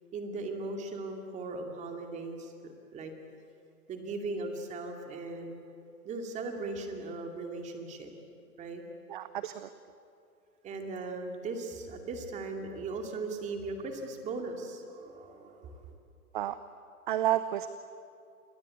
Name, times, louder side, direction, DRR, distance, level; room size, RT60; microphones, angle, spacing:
voice 1, 0.1-3.1 3.9-5.6 6.0-8.1 8.6-8.8 10.6-15.9, right 3 dB, 15° right, 4 dB, 2.5 m, -38 dB
voice 2, 9.1-9.7 16.3-16.6 17.1-17.7, right 13 dB, 35° right, 13 dB, 0.7 m, -30 dB
28.5 x 22.0 x 8.5 m, 2.5 s
hypercardioid pair, 150°, 46 cm